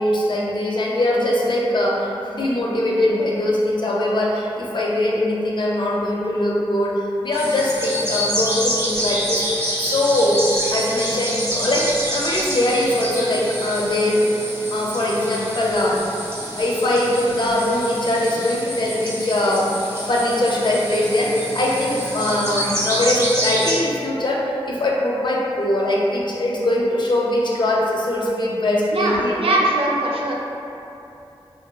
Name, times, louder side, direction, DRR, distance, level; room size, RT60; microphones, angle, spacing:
voice 1, 0.0-10.4 10.7-16.0 16.6-19.8 20.1-29.4, left 1 dB, 50° left, -3 dB, 0.4 m, -21 dB
sound 1, 7.3-23.7, equal, 25° right, 0.6 m, -27 dB
voice 2, 28.9-30.3, right 1 dB, 75° right, -2 dB, 0.3 m, -21 dB
2.4 x 2.3 x 2.3 m, 2.8 s
wide cardioid pair, 70°, 10 cm